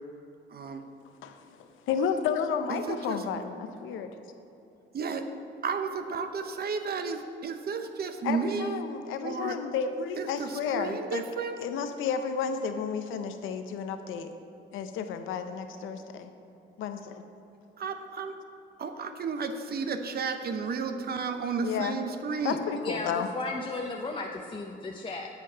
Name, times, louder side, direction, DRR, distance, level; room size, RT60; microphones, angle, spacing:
voice 1, 1.9-4.1 8.2-11.3 11.6-14.3 14.7-16.3 16.8-17.2 21.6-22.0 22.4-23.3, left 7 dB, 85° left, 8 dB, 0.7 m, -32 dB
voice 2, 2.7-3.2 4.9-5.2 5.6-8.8 9.2-9.6 10.2-11.6 17.8-18.3 18.8-22.6, right 5 dB, 50° right, 7 dB, 0.9 m, -32 dB
voice 3, 22.8-25.3, left 3 dB, 25° left, 1 dB, 0.7 m, -35 dB
9.5 x 7.5 x 5.7 m, 2.9 s
cardioid pair, 90°, 20 cm